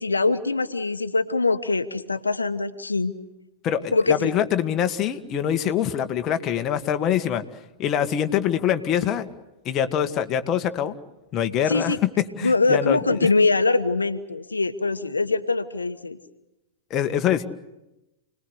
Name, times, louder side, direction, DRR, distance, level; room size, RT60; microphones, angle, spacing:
voice 1, 0.0-3.1 3.9-4.3 11.7-12.0 12.4-16.2, left 3 dB, 85° left, 9 dB, 1.3 m, -23 dB
voice 2, 3.6-7.4 7.8-9.3 9.7-11.0 11.3-13.3 16.9-17.4, left 9 dB, 35° left, 7 dB, 1.8 m, -24 dB
29.5 x 20.5 x 8.2 m, 0.97 s
figure-of-eight pair, 100°, 0 cm